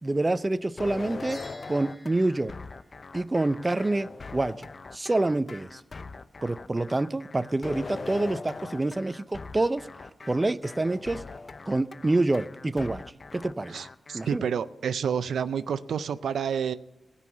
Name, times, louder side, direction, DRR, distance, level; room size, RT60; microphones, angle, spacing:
voice 1, 0.0-1.4 1.7-2.5 3.1-4.7 4.9-5.8 6.4-9.9 10.3-11.2 11.7-13.0 13.3-13.8 14.1-14.4, right 2 dB, 25° right, 14 dB, 0.4 m, -27 dB
sound 1, 0.8-14.4, left 4 dB, 45° left, 0.5 m, -41 dB
sound 2, 1.3-3.8, left 1 dB, 15° left, 1.5 m, -52 dB
voice 2, 13.7-16.7, right 7 dB, 90° right, 13 dB, 0.4 m, -29 dB
16.5 x 5.5 x 8.0 m, 0.88 s
cardioid pair, 75°, 0 cm